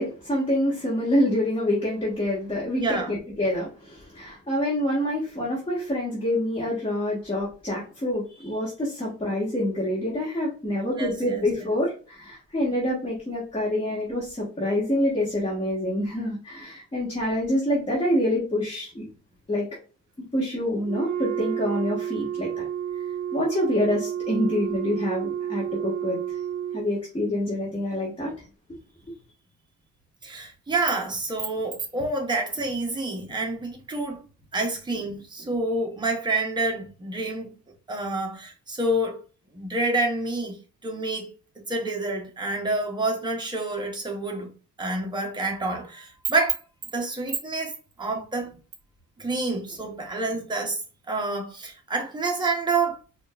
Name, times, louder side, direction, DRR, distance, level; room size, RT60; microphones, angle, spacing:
voice 1, 0.0-19.0 19.5-19.7 20.3-22.6 23.3-26.4 26.7-28.3, left 1 dB, 15° left, 1.5 m, -26 dB
voice 2, 2.8-3.1 11.0-11.7 30.2-34.2 34.5-37.5 37.9-39.2 39.5-40.6 40.8-44.5 44.8-46.6 46.9-47.7 48.0-48.6 49.2-50.8 51.1-53.0, right 2 dB, 15° right, 0.9 m, -28 dB
Wind instrument woodwind instrument, 20.8-26.9, right 10 dB, 75° right, 0.4 m, -30 dB
5.0 x 2.5 x 2.4 m
wide cardioid pair, 170°, 30 cm